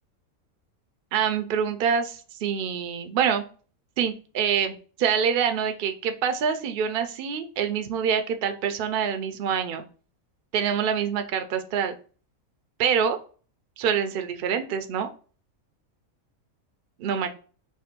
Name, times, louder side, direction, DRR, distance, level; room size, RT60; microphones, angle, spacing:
voice 1, 1.1-3.4 4.0-4.7 5.0-9.8 10.5-11.9 12.8-13.2 13.8-15.1 17.0-17.3, right 7 dB, 80° right, 7 dB, 0.5 m, -25 dB
3.4 x 2.1 x 4.2 m, 0.39 s
omnidirectional pair, 1.5 m